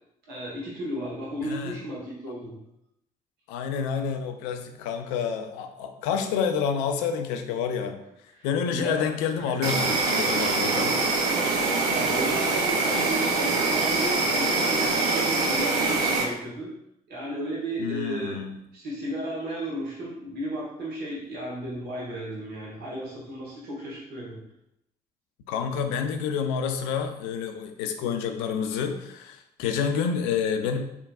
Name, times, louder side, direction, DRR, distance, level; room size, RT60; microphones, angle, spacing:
voice 1, 0.3-2.6 8.3-9.1 9.4-9.8 11.9-16.7 17.1-18.4 18.7-24.4, right 1 dB, 55° right, -6 dB, 1.5 m, -34 dB
voice 2, 1.4-1.8 3.5-8.0 8.4-11.0 17.8-18.6 25.5-30.8, left 7 dB, 65° left, 7 dB, 0.5 m, -28 dB
Insect, 9.6-16.2, right 3 dB, 70° right, 0.7 m, -24 dB
4.4 x 3.7 x 2.3 m, 0.80 s
figure-of-eight pair, 50°, 20 cm